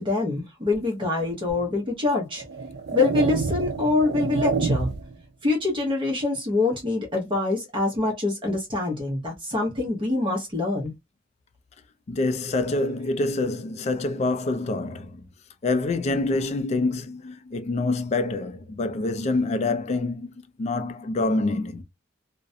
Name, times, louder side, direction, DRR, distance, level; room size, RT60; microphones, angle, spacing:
voice 1, 0.0-2.4 2.9-4.9 5.4-10.9, left 3 dB, 25° right, 0.8 m, -25 dB
sound 1, 1.5-1.6 2.4-5.2, right 4 dB, 60° right, 0.5 m, -27 dB
voice 2, 12.1-15.3 15.6-21.8, left 2 dB, 35° left, 0.3 m, -26 dB
2.4 x 2.1 x 2.5 m
head